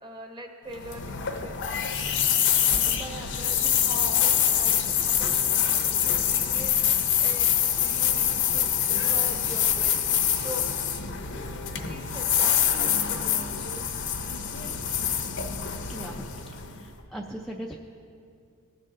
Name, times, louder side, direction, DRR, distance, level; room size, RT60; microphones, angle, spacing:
voice 1, 0.0-1.8 2.8-6.8 7.2-7.5 7.8-10.0 10.3-10.6 11.7-14.0, equal, 20° right, 3 dB, 1.0 m, -42 dB
sound 1, 0.7-16.9, left 9 dB, 55° left, 0.7 m, -25 dB
voice 2, 15.9-16.2 16.5-17.8, right 1 dB, ahead, -1 dB, 0.4 m, -39 dB
19.0 x 6.5 x 3.7 m, 2.6 s
head